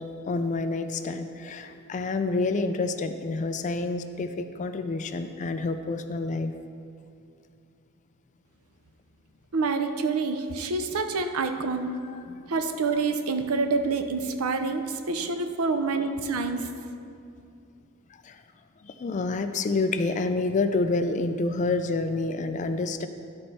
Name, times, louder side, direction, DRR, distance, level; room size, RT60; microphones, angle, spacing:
voice 1, 0.0-6.5 12.0-12.4 18.2-18.4 18.8-23.1, left 3 dB, 35° left, 9 dB, 0.3 m, -28 dB
voice 2, 9.5-12.0 12.5-16.7, right 4 dB, 75° right, 7 dB, 0.6 m, -27 dB
12.0 x 4.4 x 4.1 m, 2.5 s
head